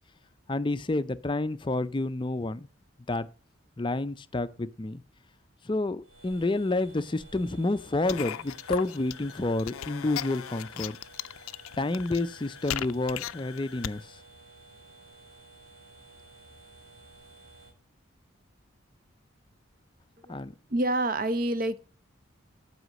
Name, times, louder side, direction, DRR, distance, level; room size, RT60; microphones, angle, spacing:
voice 1, 0.5-2.7 3.1-3.3 3.8-5.0 5.6-11.0 11.8-14.2 20.3-20.5, left 2 dB, 25° left, 0.4 m, -29 dB
sound 1, 6.0-17.7, right 2 dB, 85° right, 2.7 m, -53 dB
sound 2, 8.1-14.0, left 10 dB, 85° left, 0.4 m, -38 dB
voice 2, 20.2-21.8, right 1 dB, 40° right, 0.7 m, -28 dB
11.0 x 5.0 x 6.4 m
head